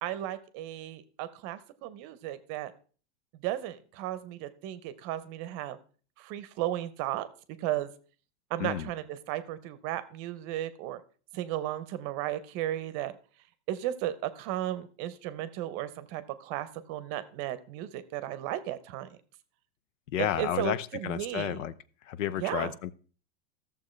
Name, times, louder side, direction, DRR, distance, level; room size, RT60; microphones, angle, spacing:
voice 1, 0.0-2.7 3.4-5.8 6.2-7.3 7.6-7.9 8.5-11.0 11.3-13.1 13.7-19.1 20.2-21.6 22.3-22.8, right 13 dB, 35° right, 15 dB, 0.7 m, -35 dB
voice 2, 20.1-20.8 21.0-21.7 22.1-22.9, left 10 dB, 75° left, 16 dB, 0.8 m, -31 dB
14.0 x 7.0 x 3.2 m, 0.41 s
supercardioid pair, 150°, 38 cm